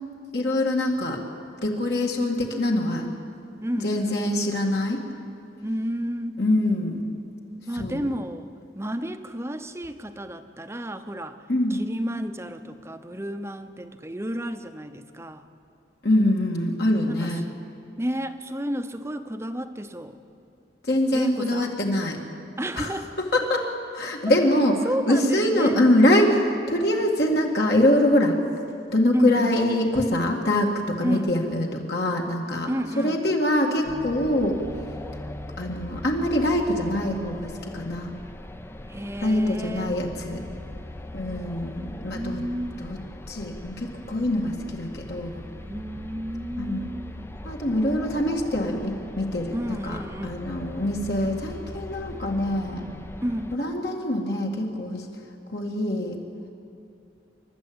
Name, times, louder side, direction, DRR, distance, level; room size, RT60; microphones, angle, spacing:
voice 1, 0.3-1.2 1.6-3.1 3.8-5.0 6.4-7.0 7.7-8.1 11.5-11.8 16.0-17.4 20.8-22.2 22.8-22.9 23.3-24.8 25.1-28.4 28.9-34.6 35.6-38.1 39.2-40.4 41.1-42.4 42.8-43.0 43.3-45.4 46.6-46.9 47.4-52.9 53.5-55.1 55.5-56.2, left 1 dB, 60° left, 0 dB, 2.1 m, -24 dB
voice 2, 3.6-4.2 5.6-6.4 7.7-11.4 11.7-15.4 17.1-17.4 18.0-20.2 21.1-21.8 22.6-23.1 24.8-25.8 29.1-29.5 31.0-31.3 32.7-33.2 38.9-40.0 42.0-42.8 45.6-47.1 49.5-50.4 53.2-53.5, equal, 15° right, 8 dB, 0.9 m, -31 dB
sound 1, 33.8-53.6, left 1 dB, 15° left, 0.6 m, -40 dB
27.5 x 12.5 x 8.7 m, 2.5 s
head